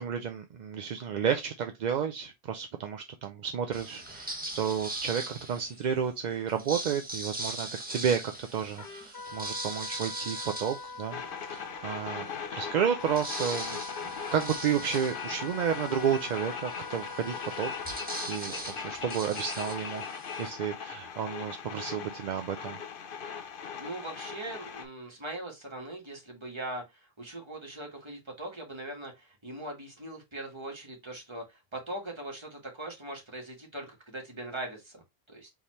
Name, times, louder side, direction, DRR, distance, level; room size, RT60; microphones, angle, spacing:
voice 1, 0.0-11.2 11.5-13.8 14.3-22.8, right 8 dB, 55° right, 0.5 m, -32 dB
sound 1, 3.7-5.9 6.5-11.7 12.1-12.2 12.5-20.5, right 1 dB, 10° right, 1.2 m, -40 dB
Trumpet, 8.8-18.3, left 4 dB, 90° left, 1.5 m, -44 dB
sound 2, 11.1-24.8, left 6 dB, 60° left, 0.8 m, -40 dB
voice 2, 12.0-12.4 23.8-35.5, right 1 dB, 25° right, 1.6 m, -41 dB
4.1 x 3.6 x 3.1 m
omnidirectional pair, 1.0 m